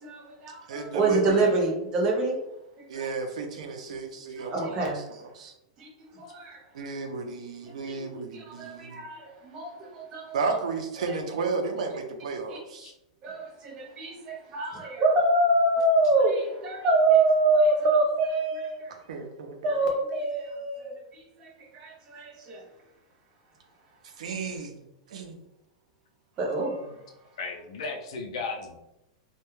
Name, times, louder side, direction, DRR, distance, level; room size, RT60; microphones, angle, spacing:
voice 1, 0.0-2.4 2.8-3.1 4.4-5.2 5.8-6.6 7.6-10.4 11.0-11.2 12.5-12.6 13.2-18.9 19.6-22.6 26.4-26.9, right 2 dB, 20° right, 0 dB, 0.5 m, -26 dB
voice 2, 0.7-1.5 2.9-4.9 5.4-5.5 6.7-9.0 10.3-12.9 19.1-19.6 24.2-24.8 25.1-25.4, right 4 dB, 85° right, 4 dB, 0.5 m, -33 dB
voice 3, 27.4-28.7, left 4 dB, 60° left, 3 dB, 0.5 m, -35 dB
2.2 x 2.1 x 3.0 m, 0.89 s
supercardioid pair, 175°, 4 cm